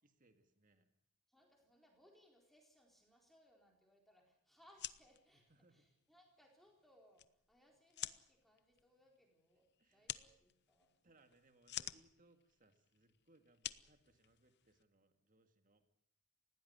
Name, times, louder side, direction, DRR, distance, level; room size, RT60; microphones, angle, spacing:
voice 1, 0.0-0.9 5.3-5.8 9.8-10.2 11.0-15.8, right 2 dB, 40° right, 7 dB, 2.0 m, -72 dB
voice 2, 1.3-10.9, equal, ahead, 0 dB, 4.1 m, -70 dB
sound 1, 4.6-14.8, left 13 dB, 50° left, 0.8 m, -51 dB
20.0 x 16.0 x 9.5 m, 0.73 s
head